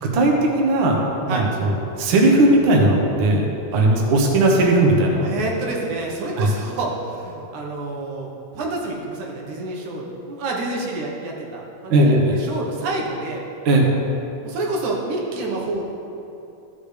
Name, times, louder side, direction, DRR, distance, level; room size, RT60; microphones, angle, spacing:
voice 1, 0.0-3.5 3.7-5.3 6.4-6.5 11.9-12.4 13.6-13.9, right 2 dB, 55° right, -1 dB, 1.6 m, -17 dB
voice 2, 5.2-13.4 14.4-15.8, right 2 dB, 85° right, -2 dB, 2.7 m, -28 dB
14.5 x 6.8 x 3.3 m, 2.9 s
omnidirectional pair, 3.4 m